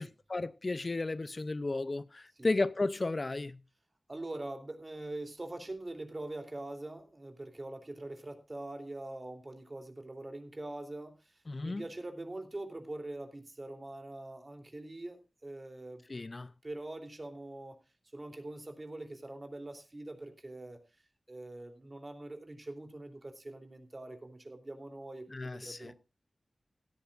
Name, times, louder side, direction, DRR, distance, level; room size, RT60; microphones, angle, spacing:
voice 1, 0.0-3.6 11.5-11.8 16.1-16.5 25.3-25.9, left 2 dB, 40° left, 0.6 m, -34 dB
voice 2, 4.1-16.0 16.6-17.8 18.1-20.8 21.3-26.0, right 2 dB, 35° right, 3.1 m, -43 dB
17.0 x 13.5 x 2.5 m
wide cardioid pair, 85°, 0 cm